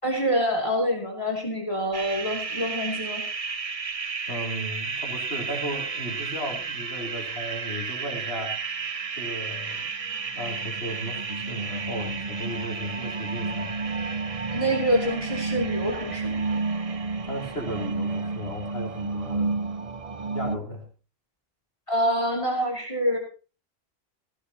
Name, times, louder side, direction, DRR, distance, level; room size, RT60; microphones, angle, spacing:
voice 1, 0.0-3.2 14.5-16.4 21.9-23.2, equal, 30° left, 0 dB, 3.2 m, -26 dB
sound 1, 1.9-20.6, right 4 dB, 40° right, 0.8 m, -31 dB
voice 2, 4.3-8.6 9.2-9.9 10.3-13.7 17.2-19.5 20.3-20.8, equal, 75° left, 0 dB, 3.7 m, -35 dB
17.0 x 15.5 x 3.0 m, 0.35 s
omnidirectional pair, 1.0 m